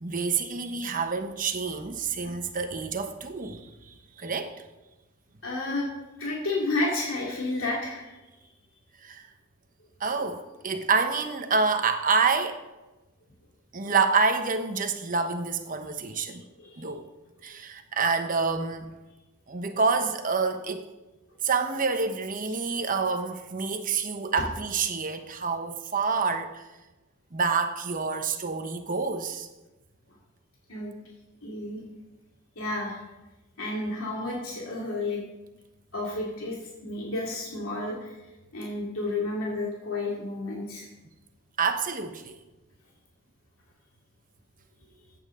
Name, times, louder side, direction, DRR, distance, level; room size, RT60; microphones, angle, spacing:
voice 1, 0.0-4.6 9.0-9.3 10.0-12.6 13.7-16.4 16.8-17.1 17.4-18.9 19.5-20.8 21.4-26.6 27.3-29.5 41.6-42.3, right 4 dB, 40° right, 7 dB, 1.0 m, -27 dB
voice 2, 5.4-5.9 6.2-8.2 10.2-10.3 13.8-13.9 16.3-16.8 24.4-24.5 30.7-30.9 31.4-31.8 32.6-33.0 33.6-35.2 35.9-36.6 36.8-38.1 38.5-40.9, left 2 dB, 85° left, -4 dB, 2.4 m, -31 dB
14.5 x 8.9 x 3.8 m, 1.1 s
head